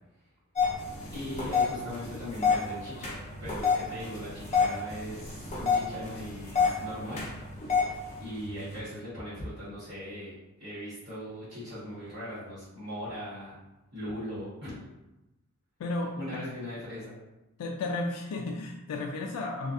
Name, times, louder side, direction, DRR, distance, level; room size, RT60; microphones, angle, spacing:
sound 1, 0.6-8.8, left 5 dB, 30° left, 0.6 m, -30 dB
voice 1, 1.1-3.1 3.4-7.2 7.6-7.9 8.2-13.6 13.9-14.8 16.1-17.2, left 1 dB, 50° right, -14 dB, 1.0 m, -39 dB
voice 2, 15.8-16.4 17.6-19.7, left 2 dB, 90° left, 4 dB, 0.3 m, -33 dB
2.5 x 2.3 x 2.3 m, 0.99 s
head